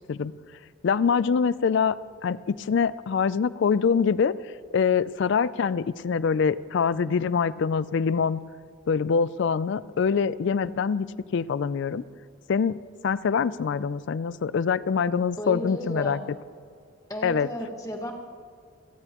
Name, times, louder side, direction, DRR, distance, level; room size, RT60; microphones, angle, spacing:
voice 1, 0.8-2.0 2.2-4.3 4.7-8.4 8.9-11.1 11.3-12.0 12.5-12.8 13.0-16.2 17.2-17.5, left 6 dB, 55° left, 17 dB, 0.3 m, -24 dB
voice 2, 15.4-16.3 17.1-18.1, equal, 15° left, 1 dB, 1.5 m, -33 dB
29.5 x 10.0 x 3.0 m, 2.2 s
head